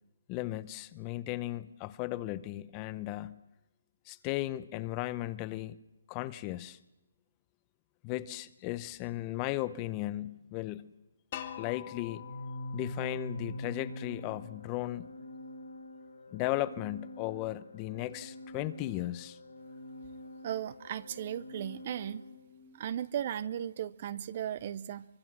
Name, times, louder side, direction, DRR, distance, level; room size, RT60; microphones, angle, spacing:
voice 1, 0.3-3.4 4.1-5.8 6.1-6.8 8.0-10.9 11.6-12.2 12.7-15.1 16.3-19.4, left 16 dB, 20° left, 16 dB, 0.7 m, -36 dB
sound 1, 11.3-14.2, left 10 dB, 40° left, 2.1 m, -46 dB
Organ, 12.0-22.8, left 1 dB, 90° left, 4.9 m, -45 dB
voice 2, 20.4-22.2 22.8-25.1, right 10 dB, 40° right, 18 dB, 0.7 m, -36 dB
24.5 x 22.5 x 6.2 m, 0.98 s
hypercardioid pair, 155°, 0 cm